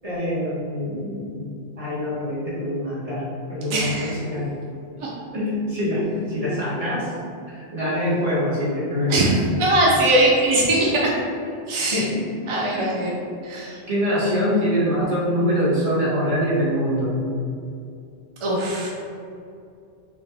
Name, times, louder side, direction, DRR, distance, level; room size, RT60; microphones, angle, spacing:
voice 1, 0.0-4.5 5.3-7.1 7.5-9.2 11.7-12.3 12.8-12.9 13.9-17.1, equal, 35° right, -9 dB, 1.2 m, -24 dB
voice 2, 3.7-4.1 5.0-5.1 9.1-11.1 11.7-12.1 12.5-13.1 13.4-13.8 18.4-18.9, right 1 dB, 50° right, -3 dB, 0.3 m, -20 dB
3.9 x 2.9 x 3.2 m, 2.5 s
omnidirectional pair, 1.1 m